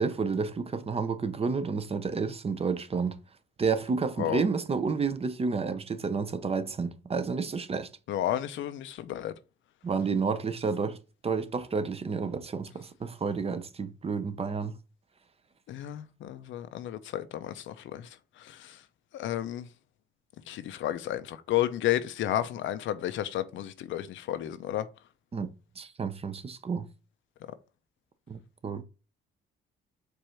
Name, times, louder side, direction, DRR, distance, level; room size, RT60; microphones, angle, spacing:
voice 1, 0.0-3.2 3.6-7.9 9.8-11.0 11.2-14.7 25.3-25.5 25.8-26.9 28.3-28.8, right 5 dB, 30° right, 0.6 m, -30 dB
voice 2, 8.1-9.3 15.7-18.1 18.4-18.8 19.1-19.7 20.5-24.8, left 12 dB, 75° left, 0.6 m, -32 dB
4.7 x 2.6 x 4.3 m
cardioid pair, 90°, 20 cm